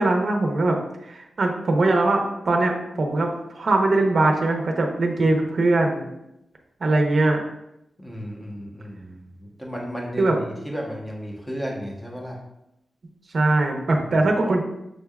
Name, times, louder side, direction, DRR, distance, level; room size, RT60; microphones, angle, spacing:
voice 1, 0.0-6.0 6.8-7.4 10.2-10.4 13.3-14.6, right 2 dB, 50° right, 2 dB, 0.7 m, -21 dB
voice 2, 8.0-12.4 13.9-14.2, equal, 10° left, -2 dB, 0.9 m, -34 dB
6.4 x 3.3 x 2.3 m, 0.85 s
wide cardioid pair, 155°, 0 cm